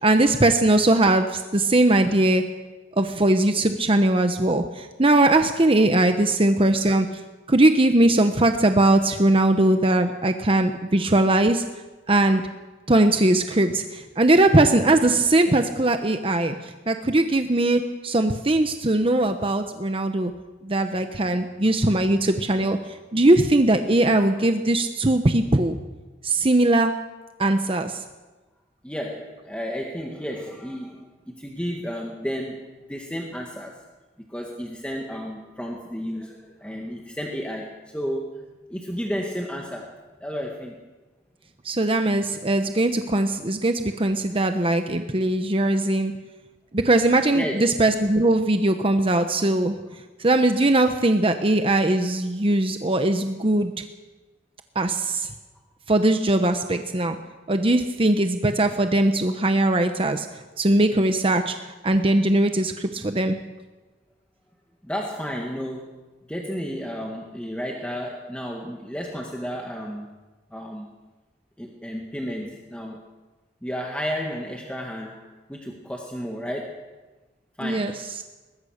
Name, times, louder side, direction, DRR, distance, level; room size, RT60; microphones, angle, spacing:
voice 1, 0.0-2.4 3.0-7.1 7.5-11.6 12.1-12.4 12.9-16.5 16.9-20.3 20.6-22.8 23.1-25.8 26.2-26.9 27.4-28.0 41.6-46.1 46.7-49.8 50.2-53.7 54.7-55.3 55.9-57.2 57.5-60.3 60.6-61.5 61.8-63.4 77.6-77.9, right 2 dB, 30° right, 7 dB, 1.0 m, -20 dB
voice 2, 28.8-32.6 32.9-33.9 34.3-38.4 38.7-40.7 47.3-47.7 64.8-65.9 66.3-70.1 70.5-70.9 71.6-73.0 73.6-76.9 77.6-78.0, equal, 5° left, 0 dB, 1.9 m, -32 dB
22.0 x 20.0 x 6.6 m, 1.2 s
head